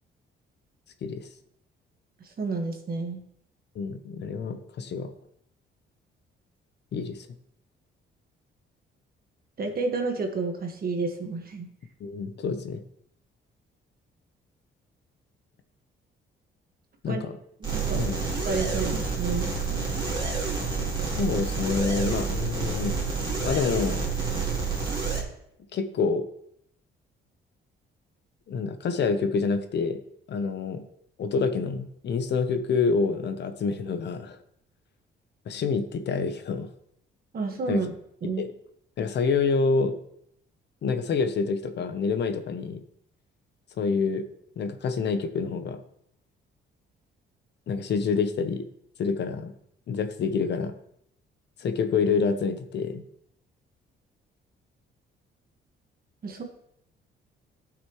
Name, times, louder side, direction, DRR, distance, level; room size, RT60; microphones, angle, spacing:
voice 1, 2.2-3.2 9.6-11.7 17.1-17.2 17.6-18.1 18.4-19.9 37.3-37.9 38.2-38.4 56.2-56.4, right 4 dB, 50° right, 3 dB, 1.7 m, -30 dB
voice 2, 3.7-5.1 6.9-7.3 12.0-12.8 17.0-17.4 17.9-18.2 21.0-23.0 23.4-24.1 25.7-26.3 28.5-30.0 30.3-30.8 31.2-34.4 35.5-36.7 37.7-37.9 38.4-38.5 39.0-40.0 40.8-42.8 43.8-44.2 44.6-45.8 47.7-48.7 49.0-49.5 49.9-50.7 51.6-53.0, left 5 dB, 60° left, 9 dB, 0.9 m, -27 dB
sound 1, 17.6-25.2, right 4 dB, 25° right, 2.9 m, -28 dB
13.5 x 6.0 x 3.1 m, 0.74 s
cardioid pair, 90°, 20 cm